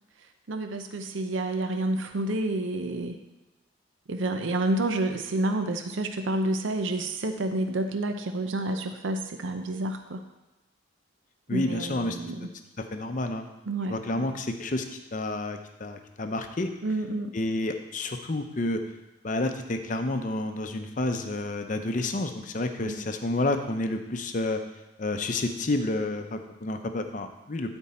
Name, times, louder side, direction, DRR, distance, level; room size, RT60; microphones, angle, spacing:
voice 1, 0.5-3.2 4.1-10.2 11.5-12.5 13.7-14.3 16.8-17.4 22.8-23.0, right 2 dB, 75° right, 7 dB, 0.6 m, -29 dB
voice 2, 11.5-12.2 12.9-13.5 13.9-14.8 15.1-16.7 17.3-18.8 19.2-24.6 25.0-27.8, left 2 dB, 40° left, 7 dB, 0.6 m, -29 dB
12.0 x 4.5 x 4.3 m, 1.0 s
head